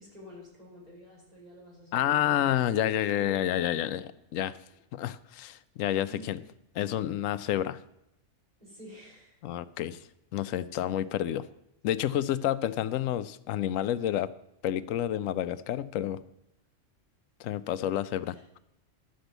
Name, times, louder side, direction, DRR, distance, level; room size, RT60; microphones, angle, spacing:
voice 1, 0.0-3.7 6.1-6.4 8.6-9.4 18.3-18.4, left 1 dB, 30° right, -6 dB, 4.7 m, -49 dB
voice 2, 1.9-4.0 4.3-4.6 4.9-6.4 6.8-7.8 9.4-10.0 10.3-11.4 11.8-14.3 14.6-16.2 17.4-18.6, left 11 dB, 85° left, 15 dB, 1.0 m, -29 dB
11.5 x 5.2 x 8.0 m, 0.82 s
omnidirectional pair, 1.3 m